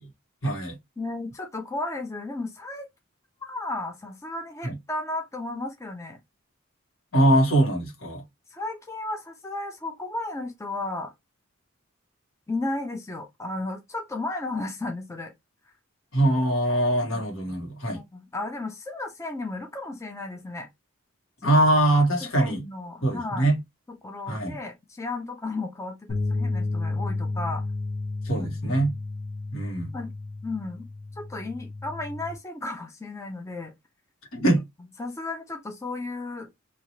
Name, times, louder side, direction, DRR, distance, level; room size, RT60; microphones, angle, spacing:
voice 1, 0.4-0.8 4.6-4.7 7.1-8.2 16.1-18.0 21.4-22.6 23.0-23.6 24.3-24.5 28.3-28.9 29.5-29.9 34.3-34.6, right 1 dB, 80° left, 1.5 m, -22 dB
voice 2, 1.0-2.9 3.4-6.2 8.5-11.1 12.5-15.3 17.9-20.7 21.4-21.6 22.2-23.5 23.9-27.6 28.4-28.8 29.9-30.1 30.4-30.8 31.2-33.7 35.0-36.5, left 2 dB, 15° left, 0.5 m, -34 dB
sound 1, 26.1-32.3, left 3 dB, 45° left, 1.0 m, -32 dB
3.0 x 2.8 x 2.8 m
head